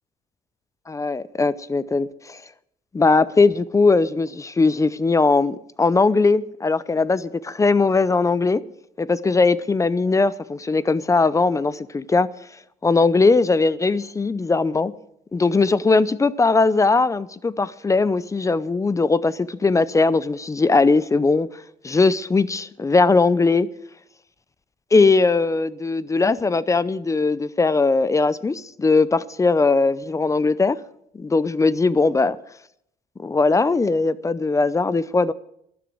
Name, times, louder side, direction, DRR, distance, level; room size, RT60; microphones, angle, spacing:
voice 1, 0.9-2.4 2.9-8.6 9.0-12.3 12.8-14.9 15.3-21.5 21.8-23.7 24.9-30.8 31.1-32.3 33.2-35.3, left 3 dB, 20° left, 0.6 m, -19 dB
12.0 x 10.0 x 7.8 m
cardioid pair, 110°, 17 cm